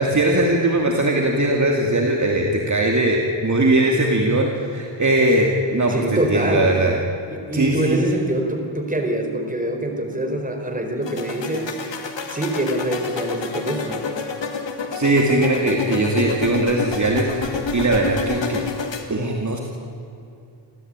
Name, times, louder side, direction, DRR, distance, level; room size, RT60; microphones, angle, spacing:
voice 1, 0.0-6.9 7.5-8.0 14.9-18.6 19.1-19.6, right 2 dB, 40° right, 0 dB, 2.6 m, -20 dB
voice 2, 5.9-6.7 7.3-11.7 12.3-14.1, right 1 dB, 15° right, 4 dB, 4.4 m, -24 dB
sound 1, 11.0-19.0, left 5 dB, 65° left, 2.6 m, -28 dB
28.5 x 14.5 x 9.0 m, 2.6 s
cardioid pair, 85°, 46 cm